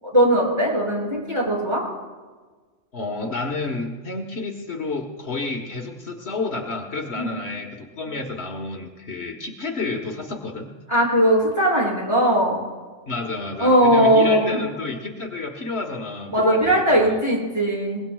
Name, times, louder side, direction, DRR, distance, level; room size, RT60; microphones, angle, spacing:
voice 1, 0.0-1.8 7.2-7.3 10.9-12.6 13.6-14.6 16.3-18.0, equal, 20° right, -4 dB, 6.6 m, -19 dB
voice 2, 2.9-10.7 13.1-17.1, left 3 dB, 60° left, 3 dB, 1.6 m, -30 dB
23.0 x 21.0 x 2.4 m, 1.4 s
omnidirectional pair, 1.2 m